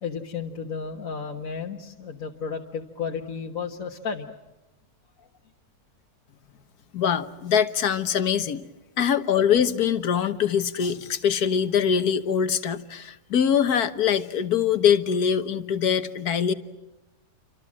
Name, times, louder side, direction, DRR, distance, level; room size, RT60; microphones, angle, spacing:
voice 1, 0.0-4.3, left 5 dB, 60° left, 2 dB, 1.7 m, -33 dB
voice 2, 6.9-8.6 9.0-16.5, left 8 dB, 75° left, 11 dB, 1.7 m, -23 dB
29.0 x 25.0 x 7.5 m, 1.0 s
omnidirectional pair, 1.6 m